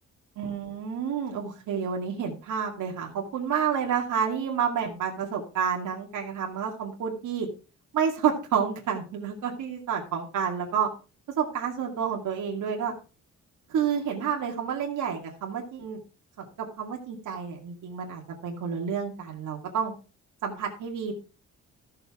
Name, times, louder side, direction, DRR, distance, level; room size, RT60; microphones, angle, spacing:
voice 1, 0.4-7.5 7.9-10.9 11.4-12.9 13.7-16.0 16.4-19.9 20.4-21.1, right 7 dB, 85° right, 0 dB, 2.4 m, -29 dB
14.5 x 7.0 x 3.7 m, 0.32 s
wide cardioid pair, 165°, 30 cm